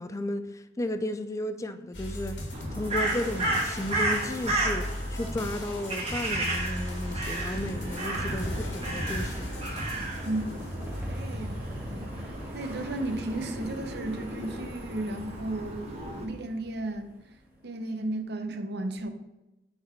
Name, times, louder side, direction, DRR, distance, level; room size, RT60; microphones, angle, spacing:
voice 1, 0.0-2.4 2.7-9.5, left 1 dB, 15° left, 0.4 m, -34 dB
sound 1, 1.9-11.0, left 1 dB, 90° left, 1.9 m, -38 dB
Crow, 2.5-16.2, right 1 dB, 35° right, 1.6 m, -33 dB
sound 2, 7.7-18.2, equal, 10° right, 1.7 m, -41 dB
voice 2, 11.1-12.1 12.5-17.1 17.6-19.1, right 2 dB, 60° right, 0.8 m, -34 dB
9.3 x 4.1 x 4.4 m
head